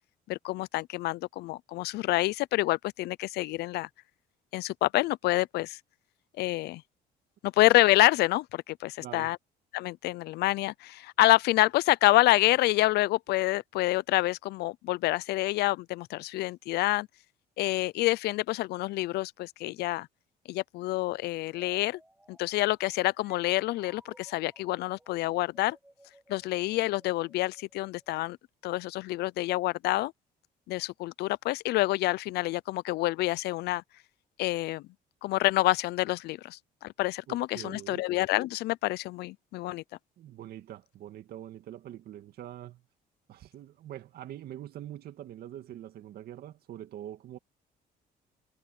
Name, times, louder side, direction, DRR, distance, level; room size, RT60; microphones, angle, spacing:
voice 1, 0.3-3.9 4.5-5.8 6.4-6.8 7.4-9.4 9.7-17.1 17.6-20.1 20.5-22.0 22.3-25.8 26.3-28.4 28.6-30.1 30.7-33.8 34.4-34.8 35.2-39.8, left 18 dB, 75° left, 0.5 m, -27 dB
voice 2, 9.0-9.3 37.3-38.0 40.2-42.8 43.3-47.4, right 12 dB, 65° right, 2.3 m, -44 dB
sound 1, 21.5-28.2, right 1 dB, 5° right, 5.9 m, -60 dB
cardioid pair, 110°, 17 cm